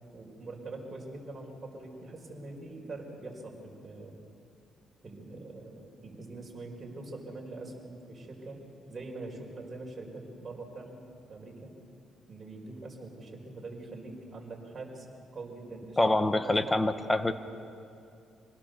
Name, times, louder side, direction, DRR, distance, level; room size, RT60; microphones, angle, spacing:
voice 1, 0.1-4.2 5.0-8.6 8.9-11.7 12.3-16.8, right 2 dB, 35° right, -1 dB, 5.0 m, -43 dB
voice 2, 16.0-17.3, left 2 dB, 15° left, 10 dB, 1.2 m, -25 dB
26.0 x 19.5 x 6.9 m, 2.5 s
cardioid pair, 90°, 0 cm